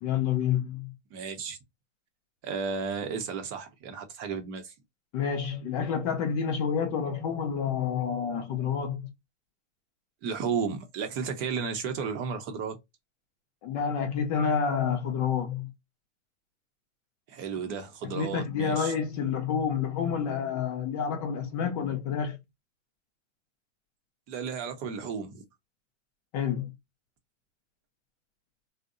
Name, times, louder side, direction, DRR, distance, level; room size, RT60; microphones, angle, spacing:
voice 1, 0.0-0.9 5.1-9.0 13.6-15.7 18.1-22.4 26.3-26.7, left 7 dB, 35° left, 0.4 m, -29 dB
voice 2, 1.1-1.6 2.4-4.7 10.2-12.8 17.3-18.9 24.3-25.4, right 6 dB, 35° right, 0.6 m, -33 dB
2.6 x 2.0 x 2.4 m
hypercardioid pair, 130°, 37 cm